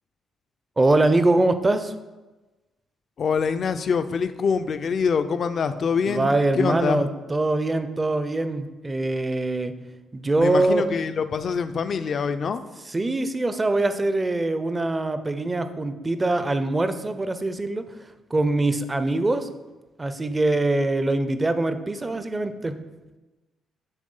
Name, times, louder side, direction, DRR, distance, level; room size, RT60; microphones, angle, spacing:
voice 1, 0.8-2.0 6.1-9.7 10.1-10.8 12.9-19.5 20.0-22.8, right 2 dB, 20° right, 10 dB, 0.5 m, -23 dB
voice 2, 3.2-6.3 6.6-7.0 10.4-12.6, left 6 dB, 50° left, 11 dB, 0.4 m, -25 dB
9.0 x 3.1 x 5.4 m, 1.2 s
cardioid pair, 90°, 0 cm